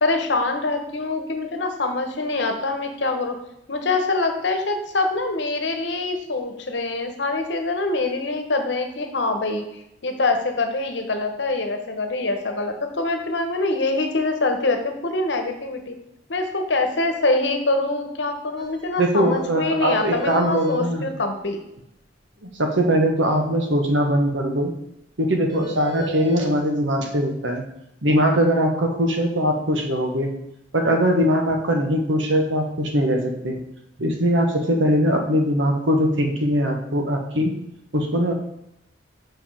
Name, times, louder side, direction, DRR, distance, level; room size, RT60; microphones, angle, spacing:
voice 1, 0.0-3.4 3.7-9.6 10.0-16.0 16.3-21.6, left 2 dB, 70° left, 6 dB, 1.1 m, -24 dB
sound 1, 18.6-18.7 18.9-19.0 19.3-19.4 19.8-20.8 25.5-26.5, equal, 25° right, 1.6 m, -32 dB
voice 2, 19.0-21.0 22.4-24.7 25.2-27.6 28.0-30.3 30.7-33.6 34.0-37.5 37.9-38.3, equal, 85° right, 3 dB, 1.3 m, -21 dB
5.5 x 5.2 x 5.6 m, 0.83 s
head